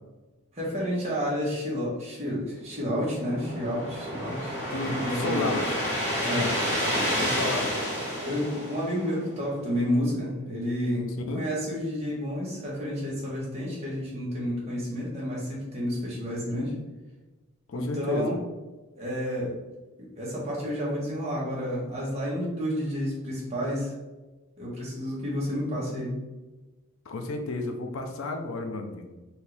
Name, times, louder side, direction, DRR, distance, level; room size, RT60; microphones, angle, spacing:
voice 1, 0.5-4.6 4.8-5.5 6.2-6.5 8.2-16.7 17.7-18.4 18.9-19.6 20.0-23.9 24.6-26.1, equal, 30° right, -6 dB, 1.4 m, -30 dB
sound 1, 2.8-9.3, equal, 10° right, 1.4 m, -30 dB
voice 2, 4.7-5.8 6.2-7.7 11.3-11.4 17.7-18.4 27.1-29.1, left 2 dB, 60° left, 4 dB, 0.5 m, -32 dB
4.4 x 2.7 x 3.4 m, 1.1 s
head